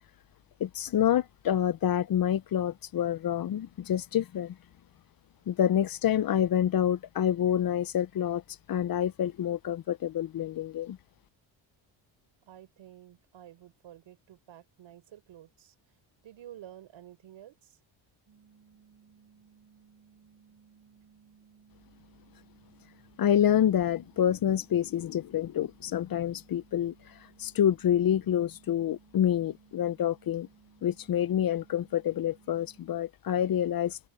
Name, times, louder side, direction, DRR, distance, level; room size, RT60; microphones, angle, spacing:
voice 1, 0.6-4.5 5.5-8.4 8.7-11.0 23.2-26.9 27.4-30.5 30.8-34.1, left 10 dB, 45° left, 0.8 m, -27 dB
voice 2, 12.4-15.7 16.2-17.8, right 11 dB, 70° right, 5.5 m, -51 dB
sound 1, 18.3-33.0, right 6 dB, 45° right, 4.4 m, -61 dB
open air
cardioid pair, 105°, 47 cm